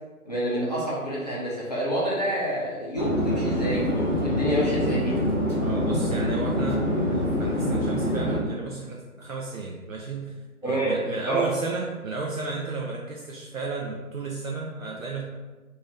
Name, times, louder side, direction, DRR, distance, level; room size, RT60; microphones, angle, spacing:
voice 1, 0.3-5.2 10.6-11.0 11.2-11.5, right 1 dB, 30° left, -7 dB, 0.7 m, -27 dB
Chatter / Fixed-wing aircraft airplane, 3.0-8.4, left 1 dB, 10° left, 1.3 m, -25 dB
voice 2, 5.6-6.8 7.1-15.2, right 4 dB, 65° right, -2 dB, 0.6 m, -33 dB
3.1 x 2.7 x 3.8 m, 1.3 s
figure-of-eight pair, 155°, 44 cm